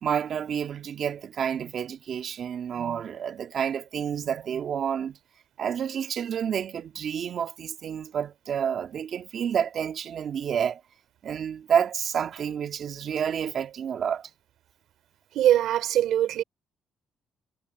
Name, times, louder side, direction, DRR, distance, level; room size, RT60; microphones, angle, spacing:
voice 1, 0.0-5.2 5.6-10.8 11.2-14.3, right 8 dB, 60° right, 2.1 m, -29 dB
voice 2, 15.3-16.4, right 12 dB, 80° right, 3.7 m, -22 dB
cardioid pair, 90°, 0 cm